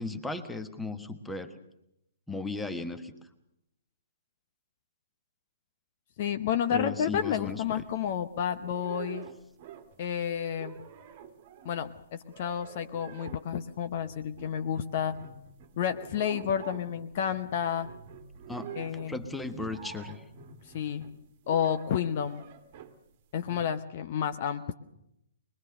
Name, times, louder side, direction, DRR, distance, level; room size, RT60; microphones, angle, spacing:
voice 1, 0.0-1.5 2.3-3.1 6.7-7.6 18.5-18.7 19.1-20.2, left 3 dB, 5° left, 8 dB, 1.3 m, -36 dB
voice 2, 6.2-9.3 10.0-10.8 11.6-15.2 15.8-17.9 18.8-19.2 20.7-21.1 21.5-22.4 23.3-24.7, left 8 dB, 40° left, 9 dB, 0.8 m, -30 dB
sound 1, 7.1-8.2 8.6-10.1 10.4-23.0 23.4-23.7, right 7 dB, 35° right, 1.6 m, -48 dB
23.5 x 21.0 x 6.7 m, 0.82 s
figure-of-eight pair, 125°, 0 cm